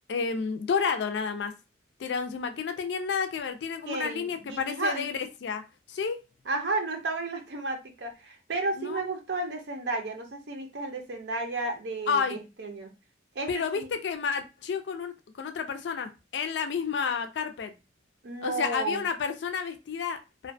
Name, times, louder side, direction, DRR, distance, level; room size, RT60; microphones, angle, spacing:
voice 1, 0.1-1.5 2.0-5.6 5.9-6.2 8.8-9.1 12.1-12.4 13.5-17.7 18.4-20.5, left 6 dB, 80° left, 0.4 m, -30 dB
voice 2, 3.9-5.1 6.5-12.9 13.3-13.9 18.2-19.0, right 2 dB, 85° right, 0.6 m, -33 dB
2.4 x 2.2 x 2.5 m
head